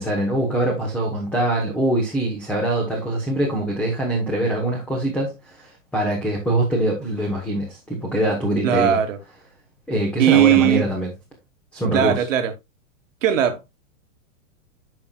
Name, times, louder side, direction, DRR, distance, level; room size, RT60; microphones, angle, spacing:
voice 1, 0.0-9.0 9.9-11.1 11.7-12.3, right 1 dB, 5° left, 1.0 m, -23 dB
voice 2, 8.6-9.2 10.2-10.9 11.9-12.5 13.2-13.6, right 11 dB, 80° right, 1.4 m, -18 dB
9.6 x 5.8 x 2.3 m
supercardioid pair, 165°, 38 cm